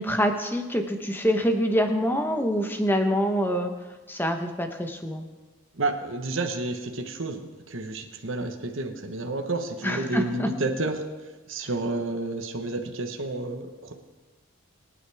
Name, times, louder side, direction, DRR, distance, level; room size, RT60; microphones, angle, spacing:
voice 1, 0.0-3.7 4.1-5.2 9.8-10.5, equal, 10° left, 5 dB, 1.0 m, -25 dB
voice 2, 5.8-11.0 11.5-13.9, right 2 dB, 65° right, 4 dB, 1.2 m, -30 dB
23.0 x 9.6 x 3.5 m, 1.3 s
head